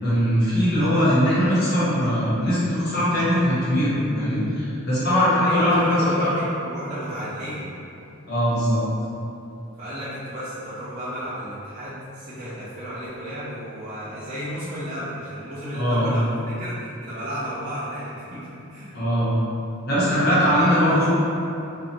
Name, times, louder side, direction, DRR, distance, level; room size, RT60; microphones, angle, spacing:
voice 1, 0.0-6.3 8.3-8.8 15.7-16.1 18.9-19.3 19.9-21.1, equal, 50° left, -11 dB, 1.1 m, -21 dB
voice 2, 5.4-7.7 9.8-19.0 20.2-21.1, equal, 35° right, -12 dB, 0.5 m, -33 dB
2.7 x 2.4 x 2.9 m, 2.7 s
head